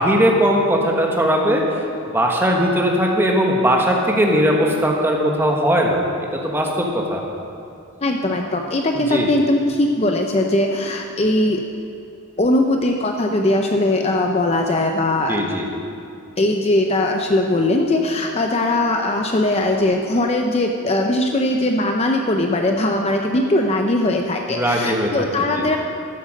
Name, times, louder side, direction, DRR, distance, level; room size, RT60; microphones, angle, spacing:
voice 1, 0.0-1.8 2.1-6.0 6.3-7.2 8.9-9.3 15.3-15.7 24.5-25.3 25.6-25.7, equal, 10° right, 0 dB, 1.3 m, -19 dB
voice 2, 8.0-11.6 12.4-15.4 16.4-25.8, left 1 dB, 30° left, 3 dB, 0.5 m, -20 dB
13.0 x 8.0 x 6.4 m, 2.6 s
head